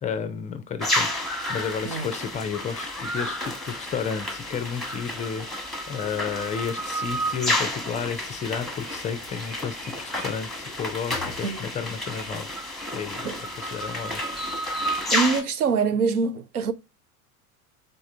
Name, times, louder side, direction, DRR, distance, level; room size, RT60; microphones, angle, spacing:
voice 1, 0.0-13.3 13.6-14.2, left 7 dB, 20° left, 0.4 m, -32 dB
sound 1, 0.8-15.4, left 1 dB, ahead, 0.9 m, -30 dB
voice 2, 15.1-16.7, right 5 dB, 85° right, 0.6 m, -24 dB
4.0 x 3.6 x 3.2 m
figure-of-eight pair, 75°, 44 cm